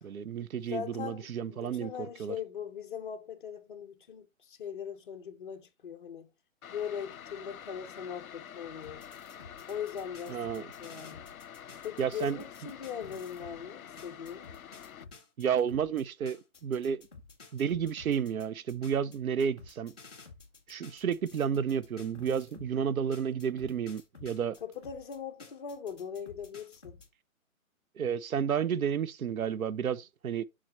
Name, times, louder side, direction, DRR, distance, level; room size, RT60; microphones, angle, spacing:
voice 1, 0.0-1.9 2.2-2.4 10.3-10.6 12.0-12.4 15.4-17.0 17.5-19.9 20.7-24.6 28.0-30.4, right 7 dB, 85° right, 0.8 m, -31 dB
voice 2, 0.7-6.3 6.7-9.0 9.7-11.2 11.8-14.5 24.6-27.0, left 8 dB, 35° left, 1.1 m, -40 dB
sound 1, 6.6-15.1, left 9 dB, 85° left, 0.8 m, -48 dB
sound 2, 8.8-13.6 14.0-22.7 23.1-27.1, left 4 dB, 5° left, 0.6 m, -53 dB
7.6 x 6.2 x 3.0 m
hypercardioid pair, 165°, 41 cm